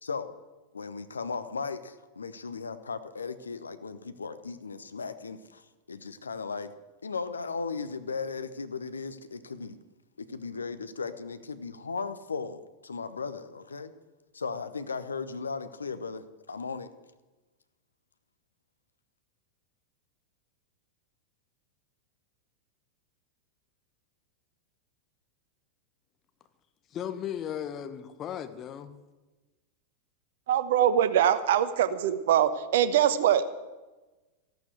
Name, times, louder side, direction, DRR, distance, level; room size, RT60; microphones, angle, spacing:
voice 1, 0.0-0.3 0.7-6.7 7.0-9.8 10.2-13.9 14.3-16.9, left 4 dB, 75° left, 1.0 m, -36 dB
voice 2, 26.9-28.9, left 9 dB, 30° left, 1.3 m, -36 dB
voice 3, 30.5-33.6, right 10 dB, 55° right, 1.0 m, -23 dB
15.0 x 12.0 x 7.9 m
figure-of-eight pair, 90°, 0 cm